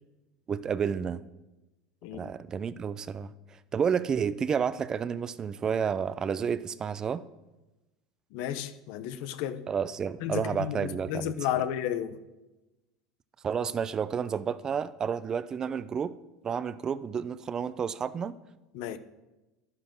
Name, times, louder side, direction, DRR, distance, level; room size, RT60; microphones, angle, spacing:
voice 1, 0.5-1.2 2.1-3.3 3.7-7.2 9.7-11.3 13.4-16.1 16.4-18.3, right 7 dB, 30° right, 0.6 m, -30 dB
voice 2, 8.3-9.6 10.2-12.2 18.7-19.0, left 10 dB, 70° left, 1.0 m, -33 dB
11.0 x 9.7 x 6.1 m
supercardioid pair, 105°, 2 cm